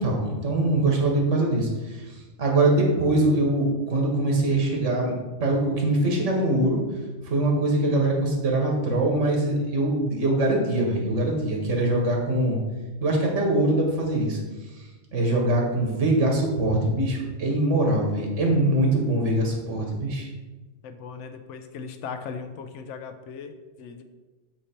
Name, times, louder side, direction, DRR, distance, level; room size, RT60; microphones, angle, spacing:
voice 1, 0.0-5.1 5.4-6.8 7.2-12.6 13.0-14.4 15.1-20.3, right 1 dB, 85° right, 0 dB, 1.5 m, -23 dB
voice 2, 20.8-24.0, left 5 dB, 80° left, 8 dB, 0.9 m, -38 dB
7.9 x 3.0 x 4.3 m, 1.2 s
omnidirectional pair, 1.2 m